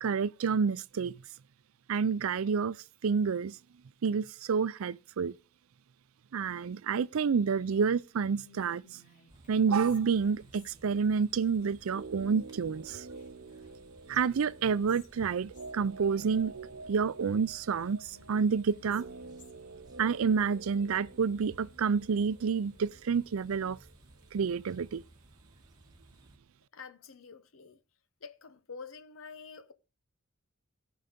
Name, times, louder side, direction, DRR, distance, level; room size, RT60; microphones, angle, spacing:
voice 1, 0.0-1.1 1.9-2.8 3.0-3.6 4.0-5.3 6.3-8.8 9.5-13.1 14.1-16.5 16.9-19.0 20.0-23.8 24.3-25.0, right 6 dB, 80° right, 0.4 m, -29 dB
Whispering, 8.2-11.1 13.1-13.8 14.1-14.2 14.6-15.8 17.6-19.7, left 3 dB, 40° left, 3.0 m, -59 dB
sound 1, 9.3-26.4, right 1 dB, 20° right, 1.6 m, -59 dB
sound 2, 11.8-23.9 24.2-24.3, right 3 dB, 65° right, 0.8 m, -48 dB
voice 2, 26.7-27.8 28.2-29.7, left 5 dB, 70° left, 1.0 m, -47 dB
16.5 x 5.6 x 5.1 m
head